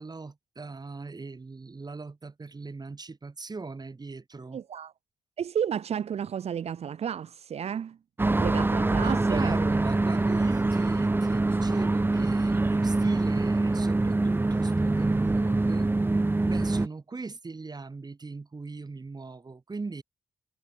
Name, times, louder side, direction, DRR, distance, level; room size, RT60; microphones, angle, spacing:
voice 1, 0.0-4.6 9.0-15.9 16.4-20.0, right 3 dB, 35° right, 5.1 m, -39 dB
voice 2, 4.5-4.9 5.4-8.0 8.4-9.5, right 8 dB, 70° right, 1.5 m, -32 dB
sound 1, 8.2-16.9, right 2 dB, 20° right, 0.7 m, -25 dB
supercardioid pair, 50°, 11 cm